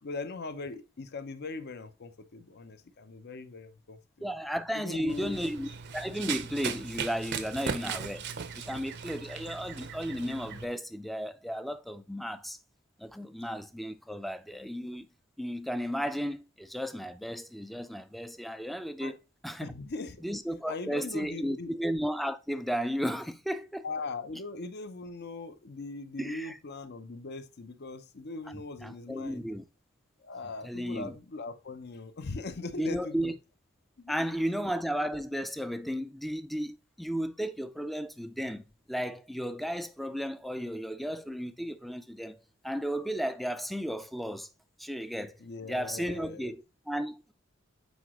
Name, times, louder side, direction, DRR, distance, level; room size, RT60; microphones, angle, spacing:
voice 1, 0.0-4.3 4.7-5.4 19.0-19.1 19.6-20.2 20.7-21.7 23.8-29.5 30.2-33.3 34.0-34.1 45.4-46.5, left 3 dB, 55° left, 0.7 m, -40 dB
voice 2, 4.2-8.3 8.6-12.6 13.0-15.1 15.4-19.2 19.4-19.7 20.2-23.9 26.2-26.6 28.5-29.6 30.6-31.2 32.8-33.4 34.1-38.6 38.9-44.5 44.8-45.4 45.7-47.3, equal, ahead, 0.4 m, -34 dB
Run, 5.1-10.6, right 6 dB, 55° right, 0.6 m, -38 dB
8.1 x 4.9 x 3.0 m
head